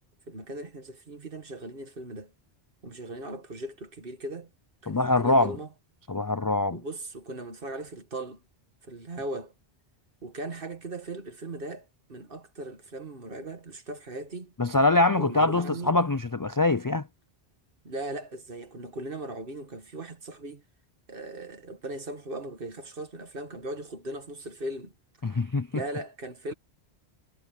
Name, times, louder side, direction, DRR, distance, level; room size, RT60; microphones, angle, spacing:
voice 1, 0.3-2.3 2.8-4.5 4.8-5.7 6.7-8.4 8.8-9.5 10.2-14.5 15.1-15.9 17.8-20.6 21.1-24.9 25.7-26.5, right 2 dB, 55° right, 1.9 m, -38 dB
voice 2, 4.9-5.6 6.1-6.8 14.6-17.1 25.2-25.7, left 2 dB, 35° left, 0.3 m, -23 dB
omnidirectional pair, 1.1 m